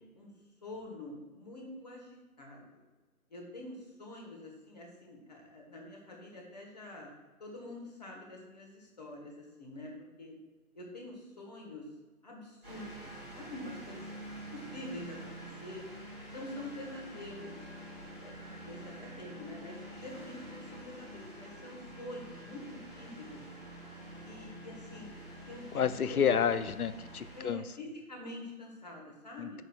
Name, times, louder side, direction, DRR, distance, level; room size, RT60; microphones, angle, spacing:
voice 1, 0.6-2.8 3.3-7.1 7.4-9.9 10.2-10.3 10.7-11.8 12.2-13.1 13.3-15.3 15.6-15.9 16.3-17.7 18.2-23.4 24.2-25.1 25.5-25.6 26.1-26.6 27.3-29.6, left 1 dB, 30° left, -1 dB, 1.4 m, -46 dB
sound 1, 12.6-27.4, right 1 dB, 5° right, 1.1 m, -47 dB
voice 2, 25.7-27.6 29.4-29.6, left 7 dB, 75° left, 14 dB, 0.6 m, -30 dB
7.1 x 6.2 x 2.4 m, 1.2 s
figure-of-eight pair, 165°, 44 cm